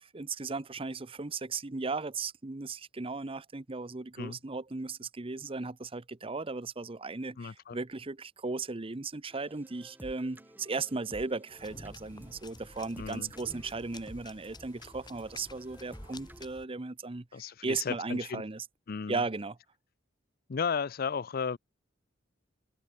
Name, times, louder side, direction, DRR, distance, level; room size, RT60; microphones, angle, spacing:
voice 1, 0.0-17.3 17.6-18.6 19.1-19.6, right 3 dB, 30° right, 0.8 m, -36 dB
voice 2, 7.4-7.8 13.0-13.3 17.3-18.4 18.9-19.2 20.5-21.6, left 6 dB, 50° left, 0.5 m, -34 dB
sound 1, 9.3-16.5, equal, 10° right, 6.7 m, -54 dB
sound 2, 11.6-16.6, left 2 dB, 20° left, 2.0 m, -51 dB
head